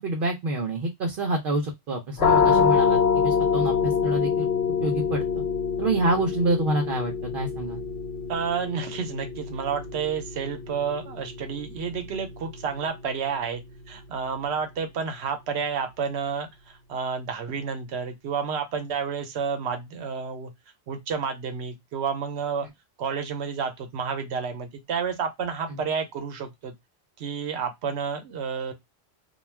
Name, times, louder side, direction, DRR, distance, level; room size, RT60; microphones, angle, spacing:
voice 1, 0.0-4.5 4.8-5.4 5.8-7.8 25.7-25.8, right 2 dB, 60° right, 0.7 m, -27 dB
sound 1, 2.2-13.7, left 6 dB, 75° left, 0.9 m, -26 dB
voice 2, 8.3-13.6 13.9-20.5 20.9-22.7 23.0-26.7 27.2-28.7, right 6 dB, 90° right, 0.9 m, -30 dB
2.3 x 2.3 x 3.1 m
omnidirectional pair, 1.1 m